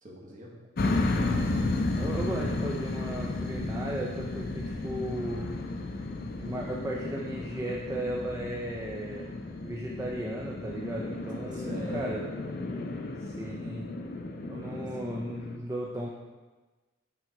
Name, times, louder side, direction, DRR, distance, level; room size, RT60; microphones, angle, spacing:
voice 1, 0.0-0.6 11.5-12.6 14.4-14.9, right 1 dB, 40° right, -2 dB, 1.1 m, -43 dB
sound 1, 0.8-15.6, left 2 dB, 50° left, 0.5 m, -33 dB
voice 2, 2.0-5.5 6.4-9.3 9.6-12.2 13.2-13.9 14.5-16.1, right 1 dB, 15° right, -2 dB, 0.4 m, -36 dB
6.0 x 3.8 x 4.6 m, 1.2 s
head